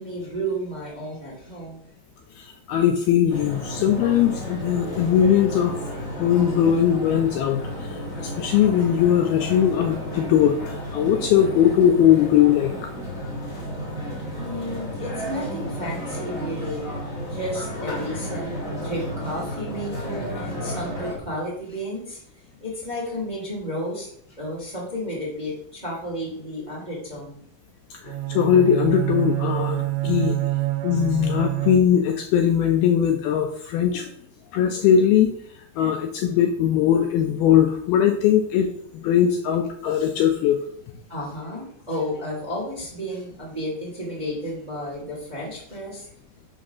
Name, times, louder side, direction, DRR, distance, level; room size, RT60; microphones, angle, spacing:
voice 1, 0.0-1.8 14.4-16.9 17.2-22.2 22.6-27.4 41.1-46.1, equal, 15° right, -4 dB, 1.8 m, -32 dB
voice 2, 2.4-5.7 6.2-12.7 27.9-30.4 30.8-34.1 34.5-35.3 35.8-38.7 38.9-40.7, left 9 dB, 80° left, 5 dB, 2.3 m, -20 dB
sound 1, 3.3-21.1, equal, 25° left, 2.1 m, -32 dB
Bowed string instrument, 28.0-32.3, right 19 dB, 85° right, 3.0 m, -27 dB
6.4 x 6.4 x 6.1 m, 0.67 s
omnidirectional pair, 4.9 m